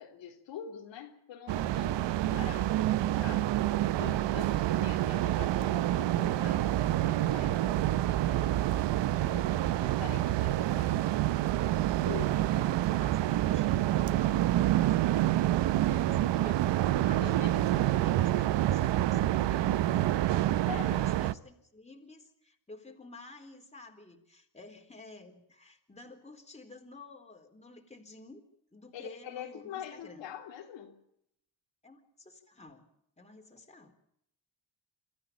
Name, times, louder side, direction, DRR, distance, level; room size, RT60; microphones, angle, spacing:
voice 1, 0.0-3.5 4.0-8.5 9.3-11.1 12.0-12.7 15.9-16.6 16.8-16.9 17.2-17.6 20.6-21.1 28.9-31.0, left 9 dB, 90° left, 3.1 m, -45 dB
sound 1, 1.5-21.3, right 14 dB, 75° right, 0.8 m, -27 dB
voice 2, 12.5-15.1 15.8-16.5 16.9-28.4 28.7-30.3 31.8-32.9 33.2-33.9, left 2 dB, 15° left, 4.0 m, -51 dB
25.5 x 14.0 x 8.6 m
cardioid pair, 75°, 43 cm